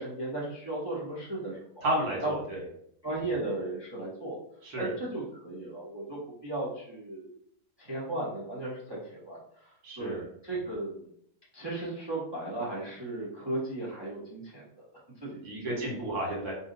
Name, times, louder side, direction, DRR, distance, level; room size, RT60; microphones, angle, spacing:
voice 1, 0.0-1.8 2.2-2.3 3.0-4.4 4.8-7.3 7.8-11.1 11.5-14.9 15.2-15.8, right 2 dB, 35° right, -6 dB, 0.4 m, -36 dB
voice 2, 1.8-2.6 4.6-4.9 9.8-10.2 15.4-16.5, right 1 dB, 70° right, -3 dB, 1.6 m, -32 dB
2.7 x 2.7 x 3.8 m, 0.69 s
omnidirectional pair, 1.7 m